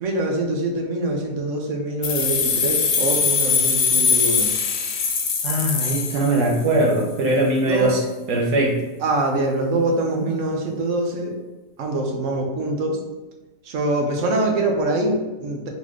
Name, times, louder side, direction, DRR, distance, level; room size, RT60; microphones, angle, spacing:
voice 1, 0.0-4.5 7.7-8.0 9.0-11.4 11.8-13.0 13.6-15.7, right 2 dB, 60° right, 1 dB, 1.0 m, -24 dB
sound 1, 2.0-6.8, left 5 dB, 65° left, 0.9 m, -22 dB
voice 2, 5.4-8.8, right 1 dB, 75° right, -1 dB, 1.5 m, -21 dB
3.8 x 3.7 x 3.1 m, 1.1 s
omnidirectional pair, 1.7 m